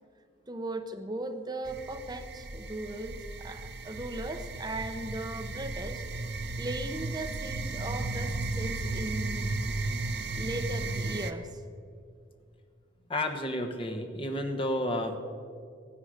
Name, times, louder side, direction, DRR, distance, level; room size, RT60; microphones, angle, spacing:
voice 1, 0.5-6.0 6.6-9.6 10.3-11.6, right 2 dB, 20° right, 6 dB, 0.8 m, -38 dB
sound 1, 1.6-11.3, right 2 dB, 60° right, 0.7 m, -35 dB
voice 2, 13.1-15.2, left 1 dB, 30° left, 5 dB, 1.2 m, -31 dB
15.0 x 9.8 x 6.5 m, 2.3 s
head